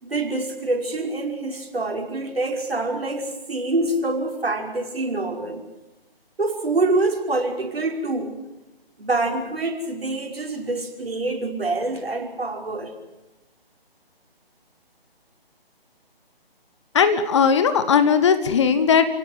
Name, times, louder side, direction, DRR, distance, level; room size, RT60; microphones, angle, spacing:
voice 1, 0.0-5.6 6.4-8.4 9.0-12.9, right 2 dB, 70° right, 1 dB, 5.7 m, -26 dB
voice 2, 16.9-19.0, left 6 dB, 30° left, 10 dB, 1.5 m, -18 dB
30.0 x 17.5 x 8.2 m, 0.98 s
figure-of-eight pair, 155°, 31 cm